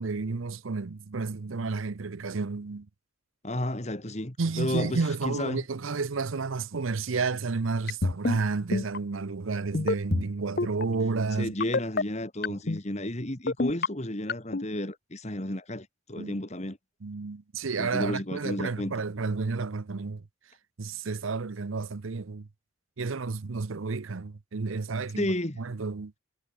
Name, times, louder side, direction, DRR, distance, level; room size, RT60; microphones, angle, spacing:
voice 1, 0.0-2.9 4.4-11.5 12.5-12.6 16.2-16.4 17.0-20.2 20.8-22.5 23.0-25.3 25.6-26.1, right 4 dB, 80° right, 0.7 m, -31 dB
voice 2, 3.4-5.6 11.4-16.8 17.8-18.9 25.2-25.6, left 1 dB, 35° left, 2.2 m, -32 dB
sound 1, 7.9-8.4 8.7-9.0 9.7-10.2 10.6-10.8 11.6-12.0 12.4-12.8 13.5-13.9 14.3-14.6, left 3 dB, 50° left, 0.8 m, -26 dB
head